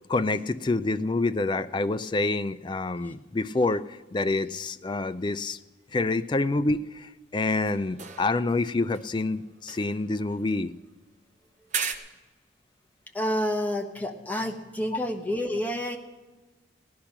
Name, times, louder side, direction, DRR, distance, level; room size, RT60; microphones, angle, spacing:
voice 1, 0.1-5.6 5.9-10.7, left 2 dB, 25° left, 12 dB, 0.3 m, -27 dB
sound 1, 7.5-8.6 8.9-11.0 11.7-12.0, right 6 dB, 40° right, 0.8 m, -37 dB
voice 2, 13.1-16.0, equal, 10° left, 3 dB, 1.0 m, -29 dB
16.0 x 10.5 x 5.9 m, 1.2 s
head